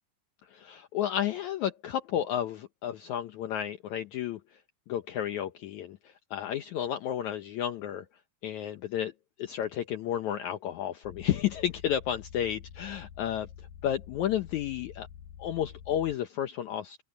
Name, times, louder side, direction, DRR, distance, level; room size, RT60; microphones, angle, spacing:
voice 1, 0.5-4.4 4.9-6.0 6.3-8.0 8.4-9.1 9.4-13.5 13.8-15.1 15.4-17.0, left 10 dB, 70° left, 2.1 m, -32 dB
sound 1, 11.0-16.2, left 9 dB, 85° left, 3.0 m, -48 dB
omnidirectional pair, 3.9 m